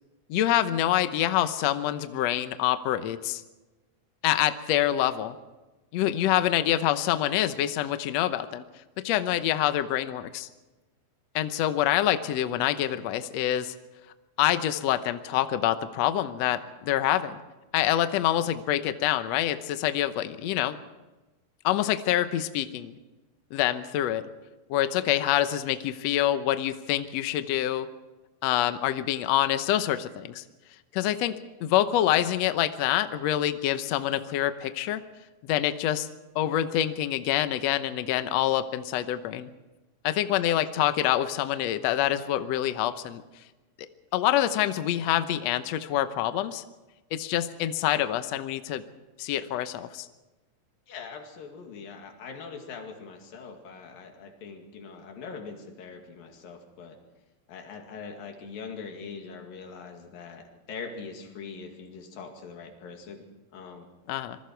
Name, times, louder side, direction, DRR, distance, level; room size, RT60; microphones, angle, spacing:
voice 1, 0.3-3.4 4.2-5.3 5.9-8.6 9.0-10.5 11.3-13.7 14.4-17.4 17.7-20.8 21.6-23.0 23.5-24.2 24.7-27.9 28.4-30.4 30.9-35.0 35.4-36.1 36.3-39.5 40.0-43.2 44.1-46.6 47.1-48.8 49.2-50.1 64.1-64.4, left 12 dB, 85° left, 10 dB, 1.4 m, -26 dB
voice 2, 40.4-40.9 50.9-57.0 57.5-63.3 63.5-63.9, left 5 dB, 65° left, 4 dB, 3.9 m, -42 dB
26.5 x 21.5 x 4.6 m, 1.1 s
omnidirectional pair, 4.4 m